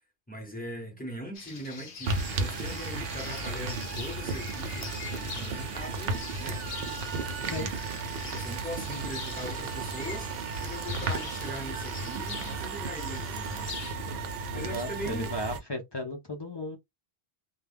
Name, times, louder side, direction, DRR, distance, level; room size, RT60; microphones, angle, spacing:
voice 1, 0.3-6.6 7.3-7.7 8.2-13.7 14.5-15.3, equal, 10° left, 0.8 m, -40 dB
sound 1, 1.3-13.9, left 5 dB, 55° left, 0.8 m, -44 dB
sound 2, 2.0-15.6, right 3 dB, 65° right, 0.8 m, -34 dB
voice 2, 14.5-16.8, left 1 dB, 40° left, 0.4 m, -35 dB
2.2 x 2.2 x 3.3 m
omnidirectional pair, 1.1 m